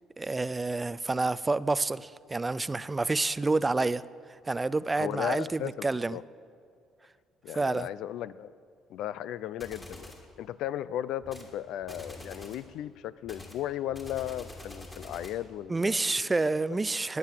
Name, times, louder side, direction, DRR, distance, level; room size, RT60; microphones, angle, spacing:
voice 1, 0.2-4.0 4.5-6.2 7.5-7.9 15.7-17.2, right 3 dB, 15° right, 16 dB, 0.3 m, -28 dB
voice 2, 5.0-6.2 7.4-8.5 8.9-10.0 10.4-16.1 16.4-16.5, left 11 dB, 75° left, 17 dB, 0.5 m, -36 dB
sound 1, 9.6-10.2 11.2-11.5 11.8-12.7 13.2-15.5, left 1 dB, 15° left, 2.7 m, -46 dB
19.0 x 9.6 x 7.4 m, 2.3 s
cardioid pair, 130°, 0 cm